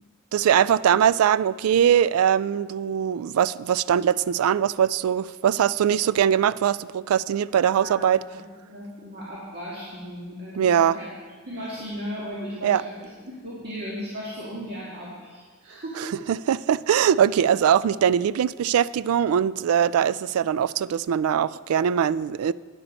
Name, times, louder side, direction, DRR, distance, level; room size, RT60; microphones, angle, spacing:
voice 1, 0.3-8.2 10.6-11.0 12.6-12.8 16.0-22.5, right 9 dB, 85° right, 0.3 m, -21 dB
voice 2, 8.7-11.1 11.5-16.1, equal, 50° right, 2.0 m, -36 dB
11.0 x 9.9 x 4.3 m
head